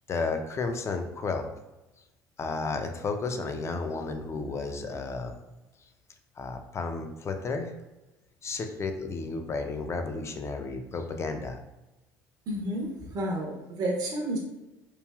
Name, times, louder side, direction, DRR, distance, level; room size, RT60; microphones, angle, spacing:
voice 1, 0.1-1.5 2.4-5.3 6.4-7.7 8.4-11.6, left 3 dB, 35° left, 5 dB, 0.4 m, -32 dB
voice 2, 12.5-14.4, right 1 dB, 50° right, -1 dB, 0.6 m, -31 dB
3.1 x 2.5 x 2.3 m, 1.0 s
hypercardioid pair, 70°, 8 cm